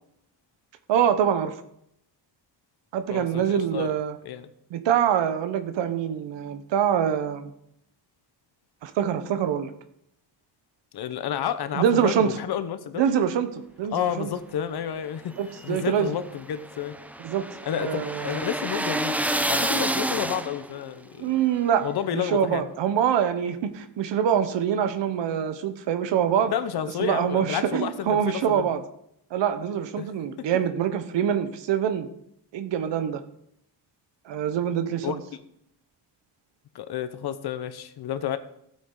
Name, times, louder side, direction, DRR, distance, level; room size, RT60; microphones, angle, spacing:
voice 1, 0.9-1.5 2.9-4.2 4.7-7.5 8.8-9.7 11.7-12.4 13.0-14.3 15.4-16.1 17.2-17.4 17.8-18.4 21.2-21.9 22.1-26.5 27.0-28.8 29.3-32.1 32.5-33.2 34.2-35.2, right 9 dB, 90° right, 9 dB, 1.0 m, -25 dB
voice 2, 3.1-3.9 4.2-4.5 10.9-13.1 13.9-15.4 15.6-17.0 17.6-19.2 19.5-21.4 21.8-22.7 26.5-28.7 30.0-30.1 35.0-35.2 36.7-38.4, left 9 dB, 60° left, 11 dB, 1.0 m, -30 dB
sound 1, 15.4-20.8, right 1 dB, 5° right, 0.3 m, -29 dB
15.0 x 8.6 x 3.9 m, 0.75 s
cardioid pair, 155°, 42 cm